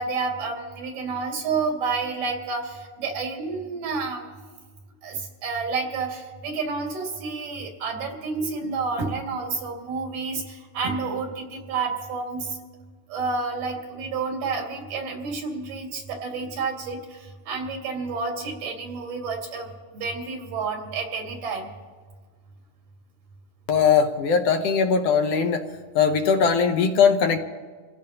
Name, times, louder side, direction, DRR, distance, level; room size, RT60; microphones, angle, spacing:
voice 1, 0.0-4.3 5.0-12.6 13.1-21.7, right 4 dB, 85° right, 1 dB, 3.9 m, -30 dB
voice 2, 23.7-25.6 25.9-27.4, left 6 dB, 70° left, 5 dB, 1.5 m, -20 dB
27.0 x 16.0 x 2.9 m, 1.5 s
omnidirectional pair, 3.7 m